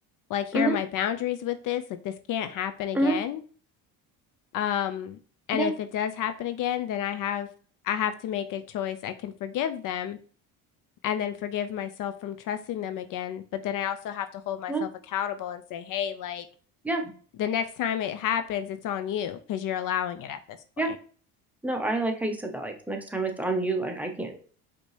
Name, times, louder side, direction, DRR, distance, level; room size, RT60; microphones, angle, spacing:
voice 1, 0.3-3.4 4.5-5.2 5.5-7.5 7.8-10.2 11.0-16.5 17.4-20.6 20.9-21.0, left 10 dB, 55° left, 9 dB, 0.5 m, -30 dB
voice 2, 21.6-24.4, right 2 dB, 5° right, 3 dB, 0.8 m, -27 dB
5.1 x 2.9 x 3.2 m, 0.43 s
cardioid pair, 100°, 38 cm